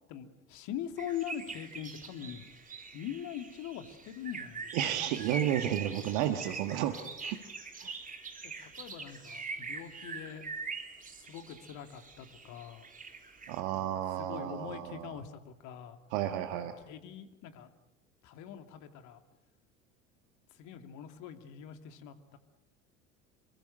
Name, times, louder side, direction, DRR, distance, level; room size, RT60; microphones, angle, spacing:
voice 1, 0.1-2.5 2.9-4.7 8.6-10.4 11.3-12.9 14.2-16.0 16.6-17.7 18.2-19.2 20.6-22.4, left 9 dB, 50° left, 7 dB, 2.7 m, -42 dB
sound 1, 1.0-13.6, right 4 dB, 20° right, 3.5 m, -43 dB
voice 2, 4.7-7.4 7.8-7.9 13.5-15.1 16.1-16.7, right 11 dB, 55° right, 7 dB, 1.7 m, -32 dB
27.5 x 23.5 x 6.7 m, 1.0 s
figure-of-eight pair, 70°, 39 cm